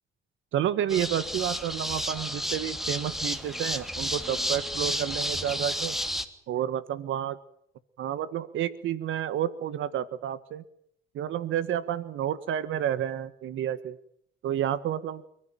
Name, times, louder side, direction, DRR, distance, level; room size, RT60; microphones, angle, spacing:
voice 1, 0.5-6.0 6.5-7.4 8.0-10.6 11.1-14.0 14.4-15.2, right 10 dB, 80° right, 14 dB, 1.5 m, -30 dB
sound 1, 0.9-6.2, equal, ahead, 3.2 m, -31 dB
29.5 x 14.5 x 9.1 m, 0.69 s
cardioid pair, 90°, 20 cm